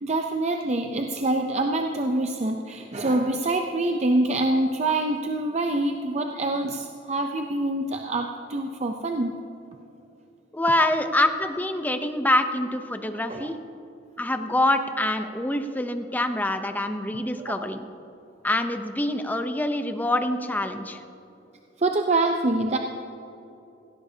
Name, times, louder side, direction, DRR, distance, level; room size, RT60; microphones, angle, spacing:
voice 1, 0.0-9.4 13.3-13.5 17.5-17.6 21.8-22.8, right 2 dB, 35° right, 4 dB, 0.5 m, -25 dB
voice 2, 10.5-13.6 14.2-17.9 18.4-21.0, left 1 dB, 10° left, 7 dB, 0.6 m, -25 dB
17.0 x 17.0 x 2.8 m, 2.8 s
head